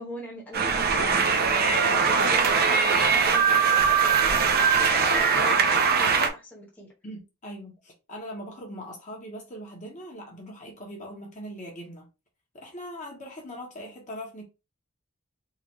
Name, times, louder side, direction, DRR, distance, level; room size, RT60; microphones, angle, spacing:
voice 1, 0.0-1.6 1.8-6.9, left 1 dB, 10° left, 1.1 m, -41 dB
sound 1, 0.5-6.3, right 5 dB, 45° right, 0.6 m, -21 dB
voice 2, 7.0-12.1 12.5-14.4, equal, 35° left, 1.2 m, -40 dB
3.9 x 2.6 x 3.1 m
head